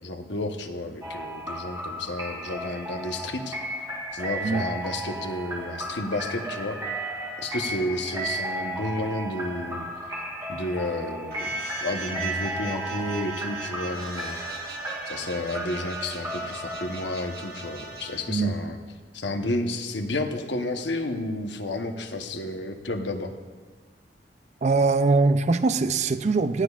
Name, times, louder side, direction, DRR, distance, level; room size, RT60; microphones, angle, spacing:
voice 1, 0.0-3.6 4.1-6.8 7.4-9.9 10.5-14.5 15.1-18.8 19.1-23.3, left 2 dB, 70° left, 4 dB, 1.1 m, -31 dB
sound 1, 1.0-18.6, right 1 dB, 20° right, 1.7 m, -35 dB
sound 2, 11.3-18.2, right 4 dB, 55° right, 1.6 m, -39 dB
voice 2, 18.3-18.6 24.6-26.6, right 3 dB, 40° right, 11 dB, 0.5 m, -22 dB
18.0 x 14.5 x 2.4 m, 1.5 s
head